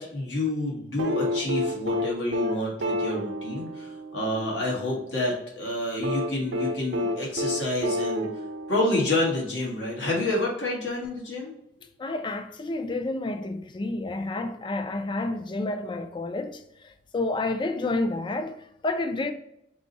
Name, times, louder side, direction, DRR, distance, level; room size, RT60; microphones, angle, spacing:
voice 1, 0.0-8.3 8.7-11.5, left 2 dB, 85° left, 1.4 m, -28 dB
sound 1, 1.0-5.1 6.0-9.6 11.0-11.1, left 1 dB, 90° right, 0.6 m, -30 dB
voice 2, 12.0-19.3, left 2 dB, 25° left, 0.3 m, -30 dB
3.5 x 2.6 x 4.0 m
head